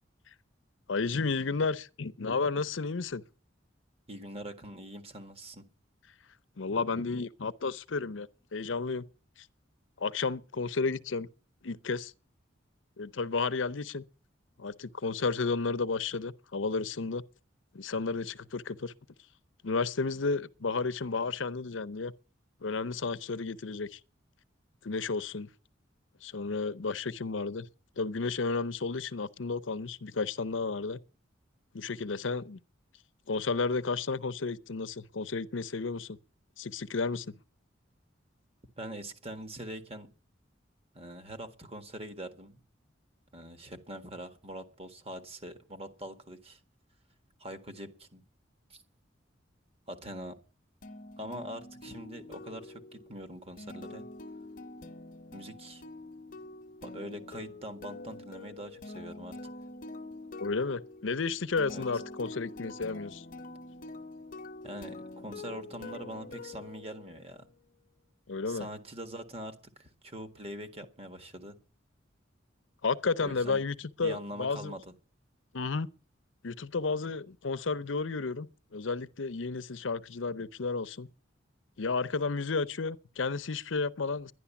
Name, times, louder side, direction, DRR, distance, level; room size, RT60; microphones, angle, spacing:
voice 1, 0.9-3.2 6.6-9.0 10.0-11.3 11.6-12.1 13.0-14.0 14.6-17.2 17.7-18.9 19.6-22.1 22.6-24.0 24.8-25.5 26.2-27.7 28.0-31.0 31.7-32.6 33.3-36.2 36.6-37.4 60.4-63.2 68.3-68.7 72.8-74.7 75.5-75.9 76.4-81.1 81.8-84.3, left 4 dB, 80° left, 0.8 m, -32 dB
voice 2, 4.1-5.7 38.8-40.1 40.9-42.6 43.3-46.6 47.4-48.2 48.7-48.8 49.9-50.4 51.2-54.1 55.3-55.8 56.8-59.4 61.7-61.8 64.6-67.4 68.5-71.6 73.2-73.6 74.0-74.9, right 1 dB, 30° right, 1.7 m, -43 dB
sound 1, 50.8-67.5, left 2 dB, 45° left, 1.0 m, -45 dB
11.0 x 11.0 x 7.1 m
head